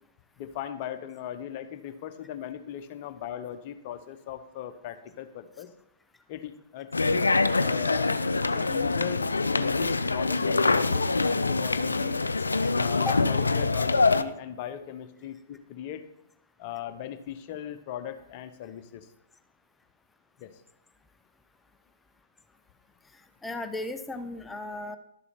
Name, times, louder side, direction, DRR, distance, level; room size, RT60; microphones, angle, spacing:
voice 1, 0.4-5.7 6.3-7.3 7.6-8.2 8.5-12.2 12.7-16.1 16.6-19.1 20.4-20.5, left 10 dB, 40° left, 9 dB, 0.9 m, -38 dB
sound 1, 6.9-14.2, left 3 dB, 80° left, 0.4 m, -25 dB
voice 2, 23.1-25.0, left 2 dB, 10° left, 8 dB, 0.5 m, -35 dB
12.0 x 6.9 x 4.3 m, 0.80 s
figure-of-eight pair, 115°, 0 cm